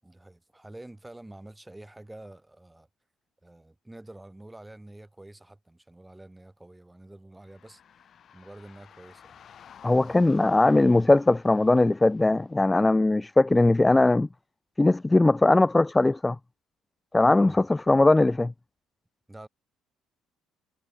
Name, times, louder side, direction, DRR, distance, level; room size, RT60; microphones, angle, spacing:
voice 1, 0.0-2.9 3.4-9.4 9.9-10.4 17.4-17.7 19.3-19.5, right 1 dB, 10° right, 7.9 m, -48 dB
sound 1, 7.4-12.6, left 8 dB, 50° left, 6.8 m, -54 dB
voice 2, 9.8-14.3 14.8-16.4 17.1-18.5, left 2 dB, 15° left, 0.3 m, -20 dB
cardioid pair, 95°, 0 cm